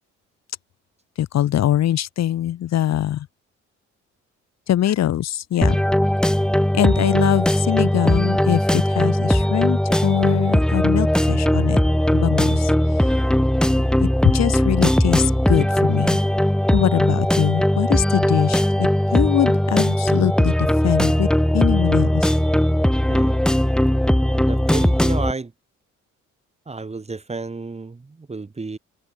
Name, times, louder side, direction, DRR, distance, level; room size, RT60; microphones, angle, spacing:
voice 1, 1.2-3.3 4.7-5.8 6.7-11.8 12.1-12.7 14.0-16.2 16.7-21.3 21.5-22.3, left 11 dB, 60° left, 1.0 m, -22 dB
sound 1, 5.6-25.3, equal, ahead, 1.1 m, -19 dB
voice 2, 24.4-25.5 26.7-28.8, right 3 dB, 20° right, 1.9 m, -31 dB
cardioid pair, 90°, 30 cm